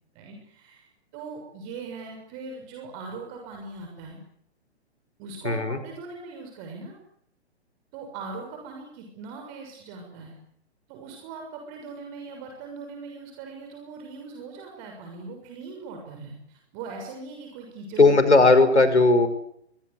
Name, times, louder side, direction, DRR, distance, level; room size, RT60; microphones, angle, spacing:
voice 1, 0.1-0.9 1.1-4.2 5.2-7.0 7.9-10.3 10.9-18.2 18.8-18.9, right 4 dB, 30° right, 2 dB, 6.9 m, -40 dB
voice 2, 5.4-5.8 18.0-19.3, left 3 dB, 85° left, 11 dB, 5.1 m, -17 dB
26.0 x 23.5 x 8.4 m, 0.73 s
figure-of-eight pair, 125°, 34 cm